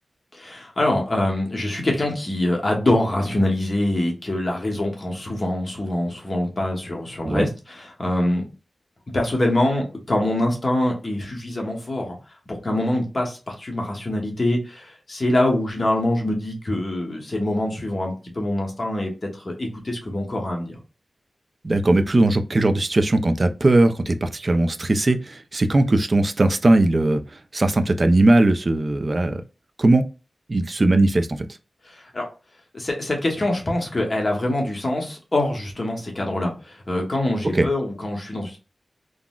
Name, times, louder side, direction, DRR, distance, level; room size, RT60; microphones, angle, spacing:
voice 1, 0.3-8.5 9.1-12.2 12.5-20.8 31.8-32.3 32.7-38.6, left 1 dB, 40° left, 0 dB, 1.0 m, -24 dB
voice 2, 21.6-27.2 27.5-29.4 29.8-30.0 30.5-31.5 37.5-37.7, right 2 dB, 40° right, 8 dB, 0.3 m, -19 dB
3.7 x 2.0 x 2.3 m, 0.32 s
wide cardioid pair, 85°, 0 cm